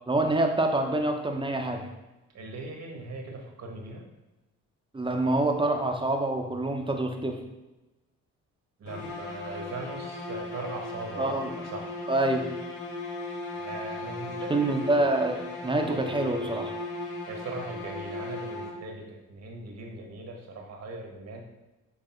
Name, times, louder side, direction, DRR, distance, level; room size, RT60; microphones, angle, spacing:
voice 1, 0.1-1.9 4.9-7.4 11.2-11.5 12.1-12.4 14.5-16.7, right 2 dB, 15° right, 3 dB, 1.0 m, -26 dB
voice 2, 2.3-4.0 8.8-11.4 11.6-11.9 13.5-14.8 17.2-21.4, right 2 dB, 60° right, 1 dB, 1.6 m, -39 dB
sound 1, 8.9-19.1, left 2 dB, 80° left, 1.2 m, -37 dB
7.9 x 3.4 x 4.5 m, 1.0 s
cardioid pair, 90°, 30 cm